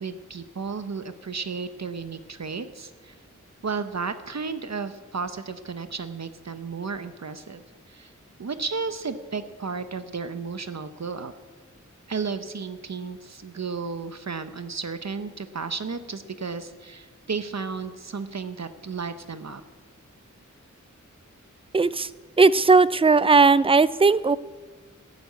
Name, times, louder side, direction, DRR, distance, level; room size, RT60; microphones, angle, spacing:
voice 1, 0.0-3.1 3.6-7.6 7.9-8.1 8.4-11.3 12.1-19.6, right 5 dB, 60° right, 10 dB, 0.8 m, -33 dB
voice 2, 21.7-22.1 22.4-24.4, right 4 dB, 20° right, 18 dB, 0.4 m, -17 dB
14.5 x 10.5 x 8.4 m, 1.4 s
wide cardioid pair, 80°, 31 cm